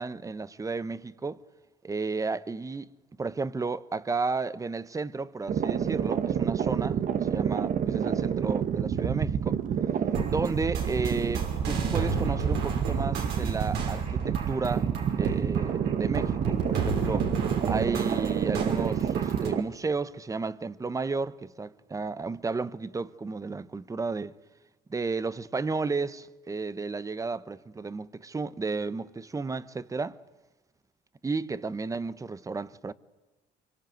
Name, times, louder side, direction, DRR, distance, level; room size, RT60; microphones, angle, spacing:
voice 1, 0.0-1.4 1.8-2.9 3.2-9.6 10.3-14.9 15.2-17.3 17.7-24.3 24.9-30.2 31.2-32.9, right 4 dB, 20° right, 1.0 m, -33 dB
sound 1, 5.5-19.6, right 8 dB, 50° right, 1.3 m, -28 dB
sound 2, 10.1-19.5, right 4 dB, 85° right, 6.1 m, -34 dB
25.5 x 23.5 x 9.3 m
cardioid pair, 110°, 17 cm